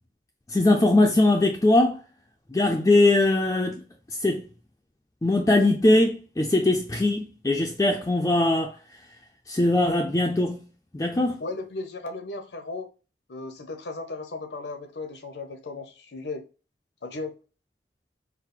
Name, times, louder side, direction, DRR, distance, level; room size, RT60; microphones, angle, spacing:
voice 1, 0.5-2.0 2.5-3.8 4.1-4.5 5.2-8.8 9.5-10.7 10.9-11.4, left 2 dB, 15° left, 0.3 m, -21 dB
voice 2, 11.4-12.9 13.3-16.4 17.0-17.3, left 3 dB, 80° left, 0.7 m, -36 dB
4.6 x 2.0 x 3.7 m
head